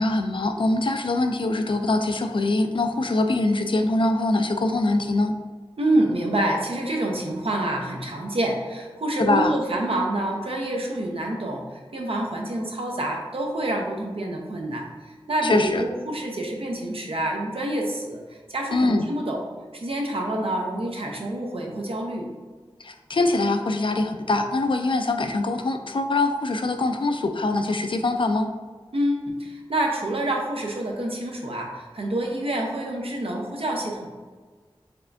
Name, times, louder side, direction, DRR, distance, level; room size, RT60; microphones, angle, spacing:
voice 1, 0.0-5.3 9.2-9.5 15.4-15.8 18.7-19.0 22.8-28.5, left 2 dB, 60° left, 6 dB, 0.4 m, -23 dB
voice 2, 5.8-14.9 15.3-18.2 18.5-19.4 19.7-22.3 28.9-34.1, right 1 dB, 75° right, 0 dB, 0.7 m, -27 dB
4.3 x 3.4 x 2.6 m, 1.4 s
wide cardioid pair, 60°, 10 cm